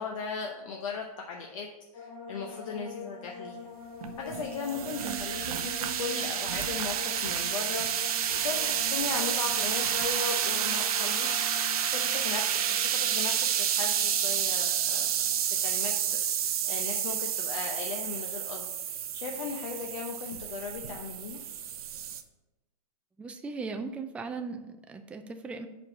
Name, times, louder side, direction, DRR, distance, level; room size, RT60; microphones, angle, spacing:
voice 1, 0.0-1.7 1.9-3.6 4.2-15.1 15.6-16.2 16.7-18.7 19.1-21.4, left 5 dB, 55° left, 1 dB, 0.8 m, -37 dB
sound 1, 1.9-17.2 17.4-18.1, left 5 dB, 35° left, 1.6 m, -45 dB
sound 2, 4.0-22.2, right 9 dB, 65° right, 0.6 m, -30 dB
voice 2, 23.2-25.7, right 4 dB, 5° right, 7 dB, 0.3 m, -38 dB
5.2 x 4.5 x 6.0 m, 1.0 s
hypercardioid pair, 125°, 20 cm